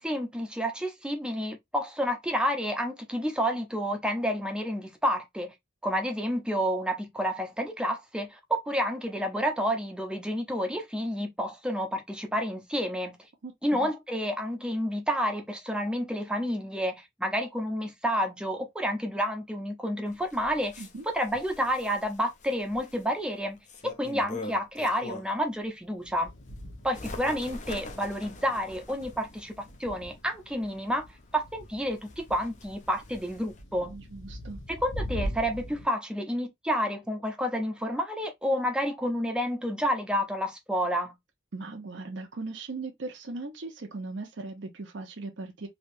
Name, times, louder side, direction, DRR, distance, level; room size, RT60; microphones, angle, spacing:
voice 1, 0.0-5.5 5.8-13.2 13.6-20.7 21.1-23.6 24.0-26.3 26.8-31.0 31.3-33.9 34.7-41.1, equal, 5° right, 0.6 m, -30 dB
voice 2, 13.4-13.9 20.8-21.1 33.9-34.6 41.5-45.7, right 3 dB, 70° right, 0.7 m, -39 dB
Bird, 20.1-25.5 25.9-33.6, left 2 dB, 40° left, 0.5 m, -45 dB
sound 1, 26.0-35.9, equal, 90° left, 1.0 m, -42 dB
3.3 x 2.9 x 2.6 m
head